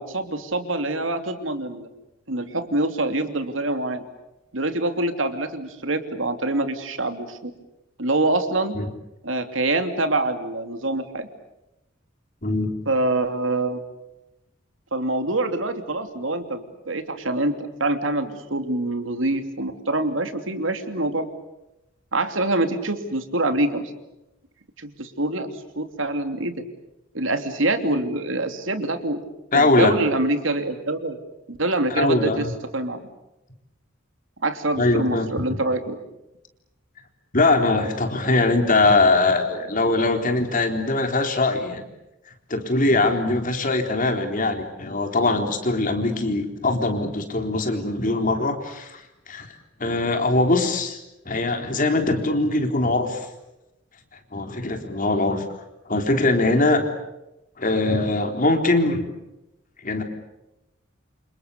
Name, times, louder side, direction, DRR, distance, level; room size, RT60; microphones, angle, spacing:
voice 1, 0.0-1.9 2.3-4.0 4.5-7.5 8.0-8.8 9.2-11.3 12.9-13.8 14.9-21.3 22.1-23.9 24.8-26.7 27.1-29.2 29.5-31.2 31.5-32.5 32.7-33.0 34.4-36.0, right 2 dB, 80° right, 8 dB, 2.9 m, -25 dB
voice 2, 12.4-12.7 29.5-29.9 31.9-32.5 34.8-35.3 37.3-41.8 42.5-49.0 49.3-49.5 49.8-51.0 51.3-53.2 54.3-55.4 55.9-56.8 57.6-59.0 59.8-60.0, left 2 dB, 45° left, 5 dB, 3.9 m, -21 dB
29.0 x 27.5 x 6.9 m, 0.94 s
head